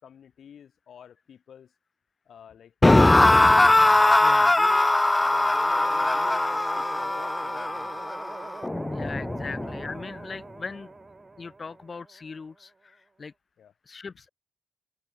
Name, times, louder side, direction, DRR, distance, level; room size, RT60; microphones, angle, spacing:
voice 1, 0.0-1.7 2.2-3.6 3.9-4.2 4.5-8.1 9.4-9.6 13.6-13.7, left 8 dB, 75° left, 3.1 m, -49 dB
sound 1, 2.8-9.9, left 2 dB, 20° left, 0.3 m, -21 dB
voice 2, 4.2-4.5 8.9-10.9 11.4-13.3 13.9-14.3, left 4 dB, 50° left, 0.9 m, -39 dB
sound 2, 5.7-12.7, right 3 dB, 40° right, 0.7 m, -43 dB
supercardioid pair, 50°, 0 cm